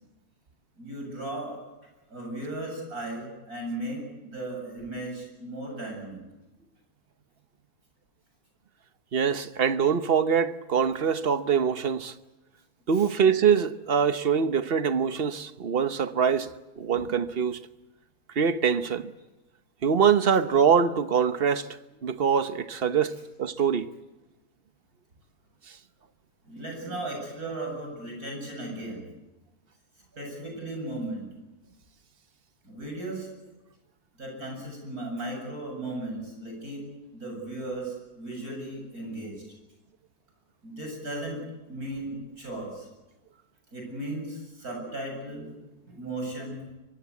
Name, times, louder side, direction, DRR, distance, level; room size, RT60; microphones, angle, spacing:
voice 1, 0.8-1.6 2.1-6.2 12.9-13.2 20.3-20.4 23.1-23.2 26.4-29.1 30.2-31.3 32.6-33.3 34.2-36.8 37.1-39.3 40.6-41.4 41.7-42.9 43.7-45.5 45.8-46.6, right 1 dB, 65° right, 8.7 m, -36 dB
voice 2, 9.1-12.1 12.9-16.5 16.8-17.6 18.3-19.1 19.8-21.8 22.0-23.9, right 7 dB, 40° right, 1.1 m, -24 dB
23.5 x 23.5 x 8.4 m
omnidirectional pair, 1.7 m